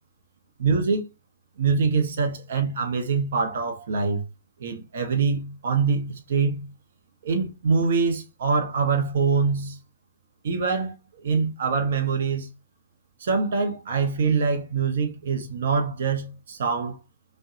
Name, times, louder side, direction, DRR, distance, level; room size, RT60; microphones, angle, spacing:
voice 1, 0.6-1.0 1.6-4.2 4.6-6.7 7.2-9.8 10.4-10.9 11.2-12.5 13.2-17.0, right 5 dB, 60° right, 0.6 m, -24 dB
2.6 x 2.1 x 2.5 m
figure-of-eight pair, 120°, 0 cm